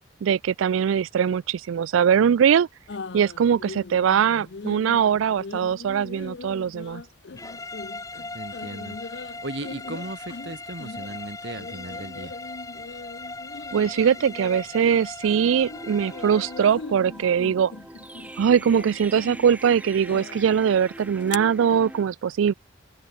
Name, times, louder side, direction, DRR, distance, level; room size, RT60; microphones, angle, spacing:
voice 1, 0.2-2.7 3.1-7.0 13.7-17.7 18.4-22.5, right 8 dB, 85° right, 0.3 m, -21 dB
sound 1, 2.9-15.1 15.4-21.4, left 4 dB, 60° left, 0.6 m, -40 dB
sound 2, 7.4-16.8, left 3 dB, 15° left, 3.7 m, -39 dB
voice 2, 8.3-9.0 9.4-12.3, right 1 dB, 60° right, 2.9 m, -36 dB
sound 3, 15.2-22.0, right 1 dB, 5° right, 3.0 m, -42 dB
open air
head